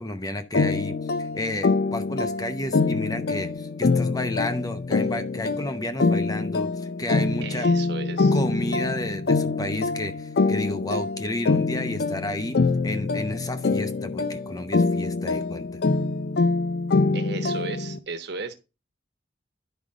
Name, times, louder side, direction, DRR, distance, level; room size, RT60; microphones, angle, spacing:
voice 1, 0.0-7.7 8.3-15.8, left 1 dB, 20° left, 0.7 m, -32 dB
sound 1, 0.5-18.0, left 3 dB, 55° left, 0.5 m, -25 dB
voice 2, 7.4-8.4 17.1-18.5, right 4 dB, 60° right, 1.1 m, -35 dB
10.5 x 5.1 x 3.6 m
head